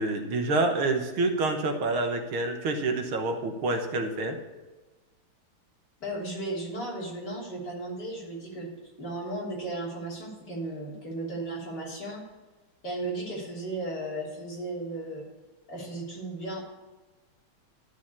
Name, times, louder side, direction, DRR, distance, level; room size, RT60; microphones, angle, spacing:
voice 1, 0.0-4.4, right 2 dB, 75° right, 4 dB, 2.0 m, -27 dB
voice 2, 6.0-8.7 9.0-12.2 12.8-15.2 15.7-16.6, right 2 dB, 50° left, -5 dB, 3.8 m, -35 dB
12.0 x 4.9 x 8.5 m, 1.2 s
omnidirectional pair, 2.4 m